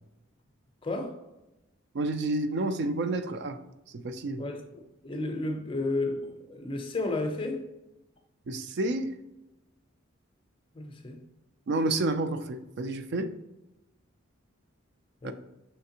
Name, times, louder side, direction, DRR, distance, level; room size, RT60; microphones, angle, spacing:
voice 1, 0.8-1.2 4.4-7.7 10.7-11.2 15.2-15.3, left 2 dB, 25° left, 0.6 m, -32 dB
voice 2, 1.9-3.6 3.9-4.4 8.5-9.1 11.7-13.3 15.2-15.3, right 2 dB, 55° right, 0.4 m, -29 dB
5.7 x 3.3 x 2.8 m
head